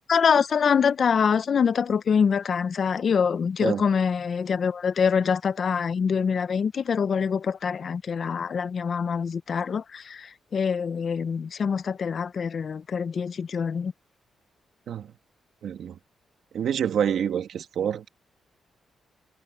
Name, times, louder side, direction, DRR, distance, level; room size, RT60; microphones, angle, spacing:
voice 1, 0.1-13.9, left 6 dB, 50° left, 0.7 m, -25 dB
voice 2, 15.6-16.0 16.5-18.1, right 8 dB, 75° right, 1.9 m, -27 dB
cardioid pair, 105°, 0 cm